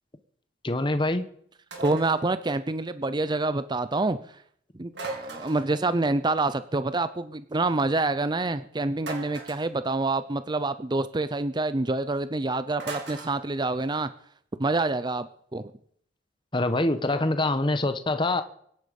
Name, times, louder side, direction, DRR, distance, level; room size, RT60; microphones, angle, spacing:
voice 1, 0.6-1.2 16.5-18.4, left 2 dB, 25° left, 1.1 m, -25 dB
sound 1, 1.7-2.2 4.9-5.8 9.0-9.7 12.8-13.4, right 3 dB, 65° right, 4.3 m, -37 dB
voice 2, 1.8-4.2 4.7-14.1 14.6-15.7, right 2 dB, 25° right, 0.6 m, -27 dB
24.0 x 11.0 x 5.3 m
head